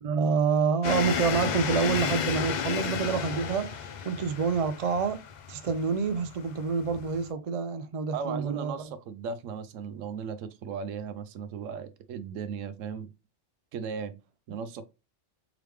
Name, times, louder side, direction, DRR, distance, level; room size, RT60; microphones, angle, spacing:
voice 1, 0.0-5.2 5.5-8.9 14.5-14.6, right 5 dB, 65° right, 0.3 m, -27 dB
sound 1, 0.8-7.3, left 7 dB, 65° left, 0.4 m, -33 dB
voice 2, 8.1-13.1 13.7-14.1 14.5-14.8, right 6 dB, 80° right, 1.0 m, -36 dB
3.7 x 3.4 x 3.1 m
omnidirectional pair, 1.3 m